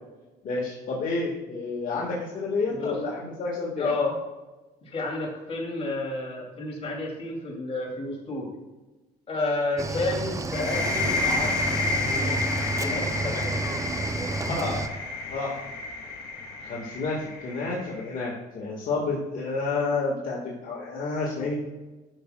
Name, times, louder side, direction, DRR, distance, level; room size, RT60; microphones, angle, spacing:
voice 1, 0.4-3.9 14.5-14.8 15.3-15.6 16.6-21.5, left 3 dB, 55° left, -3 dB, 1.7 m, -30 dB
voice 2, 3.8-4.2 4.8-8.5 9.3-11.5 11.9-12.4 12.8-13.6, left 2 dB, 35° left, -2 dB, 2.6 m, -30 dB
Cricket / Waves surf, 9.8-14.9, right 3 dB, 20° right, 0.5 m, -31 dB
sound 1, 10.5-18.1, left 3 dB, 90° left, 1.7 m, -30 dB
11.5 x 6.1 x 2.3 m, 1.2 s
cardioid pair, 110°, 17 cm